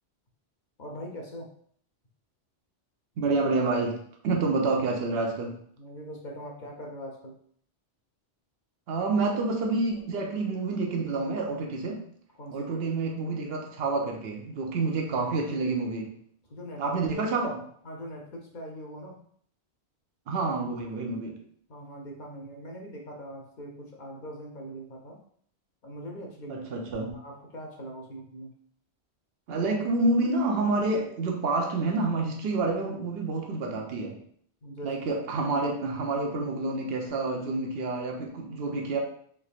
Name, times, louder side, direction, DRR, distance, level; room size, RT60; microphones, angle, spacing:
voice 1, 0.8-1.5 5.8-7.4 12.4-12.8 16.5-16.8 17.8-19.2 21.7-25.2 25.8-26.6 27.1-28.5 34.6-35.0, equal, 50° left, 0 dB, 0.7 m, -41 dB
voice 2, 3.2-5.6 8.9-12.1 12.5-16.1 16.8-17.6 20.3-21.4 26.5-27.1 29.5-34.2 34.8-39.0, right 3 dB, 65° right, 1 dB, 0.9 m, -28 dB
3.4 x 3.2 x 2.4 m, 0.62 s
omnidirectional pair, 1.1 m